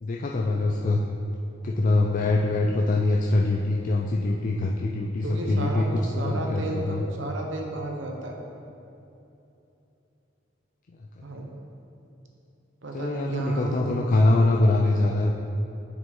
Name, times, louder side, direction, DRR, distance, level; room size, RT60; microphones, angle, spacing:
voice 1, 0.0-1.1 1.6-7.0 10.9-11.0 12.9-15.3, left 2 dB, 45° left, 0 dB, 0.4 m, -23 dB
voice 2, 5.2-5.9 6.2-8.4 11.2-11.5 12.8-14.4, right 2 dB, 85° right, 1 dB, 1.0 m, -32 dB
7.8 x 6.0 x 3.7 m, 2.8 s
head